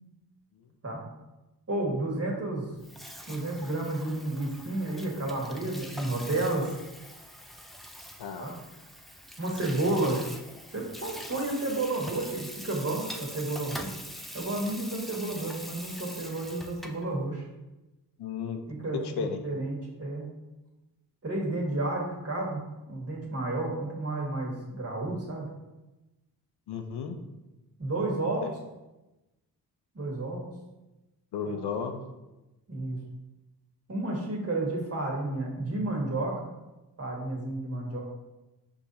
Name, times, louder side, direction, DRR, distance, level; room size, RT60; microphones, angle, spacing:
voice 1, 1.7-2.7 3.3-6.8 8.4-8.5 9.4-10.2 10.7-13.9 14.3-17.4 18.7-20.3 21.2-22.6 22.9-25.4 27.8-28.5 29.9-30.5 31.5-31.6 32.7-33.0 33.9-36.4 37.0-38.0, right 2 dB, 40° right, -2 dB, 1.4 m, -31 dB
Water tap faucet / Sink (filling or washing), 2.7-17.1, equal, ahead, 0.3 m, -44 dB
voice 2, 18.2-18.6 19.2-19.5 26.7-27.2 31.3-32.0, left 6 dB, 85° left, 6 dB, 0.6 m, -33 dB
4.7 x 2.6 x 4.0 m, 1.0 s
cardioid pair, 70°, 39 cm